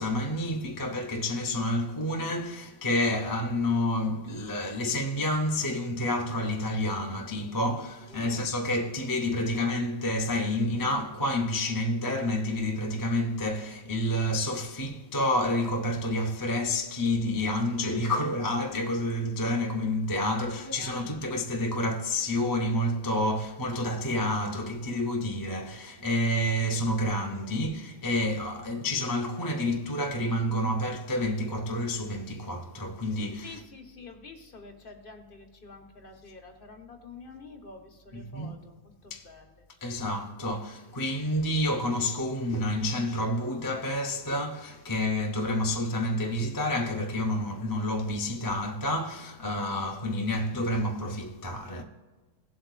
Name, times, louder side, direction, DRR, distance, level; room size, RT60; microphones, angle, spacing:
voice 1, 0.0-33.6 38.1-38.6 39.1-39.2 39.8-51.8, left 1 dB, 20° left, 0.6 m, -29 dB
voice 2, 8.1-8.5 20.5-21.4 33.4-38.8 39.0-39.7, left 3 dB, 40° left, 1.2 m, -48 dB
17.0 x 7.7 x 2.4 m
omnidirectional pair, 1.5 m